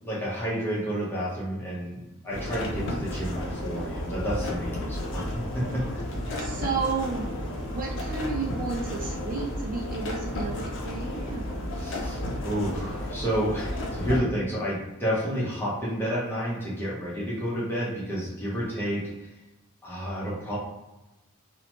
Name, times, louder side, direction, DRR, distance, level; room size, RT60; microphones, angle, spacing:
voice 1, 0.0-2.0 2.2-6.0 11.7-19.3 19.8-20.6, equal, 10° left, -7 dB, 0.7 m, -30 dB
sound 1, 2.3-14.2, left 1 dB, 55° left, 0.5 m, -32 dB
voice 2, 6.4-7.4 7.7-11.6, right 4 dB, 40° right, -1 dB, 0.3 m, -32 dB
2.8 x 2.1 x 2.9 m, 1.0 s
head